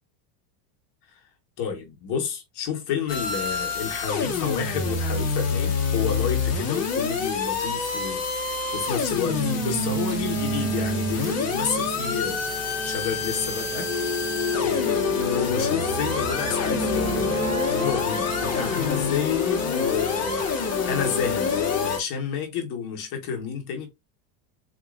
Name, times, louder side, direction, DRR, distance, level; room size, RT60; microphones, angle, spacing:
voice 1, 1.6-13.9 14.6-23.9, left 7 dB, 50° left, 1.4 m, -30 dB
sound 1, 3.1-22.0, left 5 dB, 30° left, 1.4 m, -27 dB
sound 2, 9.2-18.9, right 1 dB, 10° right, 0.9 m, -31 dB
4.1 x 2.9 x 2.4 m
supercardioid pair, 130°, 49 cm